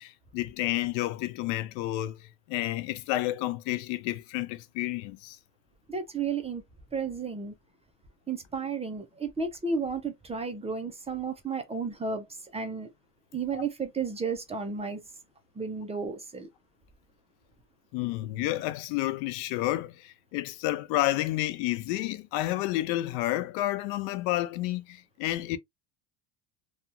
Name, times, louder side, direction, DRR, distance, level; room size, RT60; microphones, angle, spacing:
voice 1, 0.0-5.4 13.5-13.6 17.9-25.6, left 15 dB, 80° left, 0.6 m, -30 dB
voice 2, 5.9-6.6 6.9-7.5 8.3-12.9 13.3-15.0 15.6-16.5, right 5 dB, 15° right, 0.5 m, -33 dB
2.8 x 2.3 x 2.4 m
cardioid pair, 120°, 43 cm